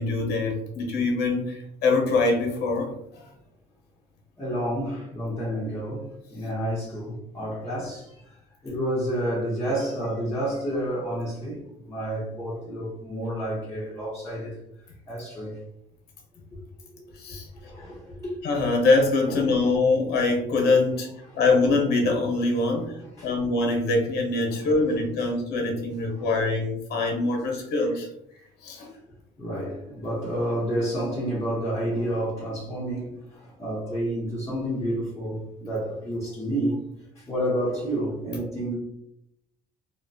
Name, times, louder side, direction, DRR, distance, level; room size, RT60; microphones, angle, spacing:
voice 1, 0.0-2.9 7.4-7.5 17.2-17.5 18.4-21.1 21.3-22.9 23.2-28.1 28.6-28.9, left 3 dB, 75° left, 0.9 m, -23 dB
voice 2, 4.4-8.4 8.6-14.6 15.1-15.6 16.5-16.6 16.9-17.4 17.6-18.4 19.3-19.6 20.9-21.0 21.3-21.4 23.0-23.4 24.5-24.7 25.2-25.3 26.2-26.4 28.8-28.9 29.4-36.8 37.2-38.8, right 1 dB, 15° left, 0.8 m, -30 dB
2.7 x 2.2 x 2.6 m
cardioid pair, 110°, 17 cm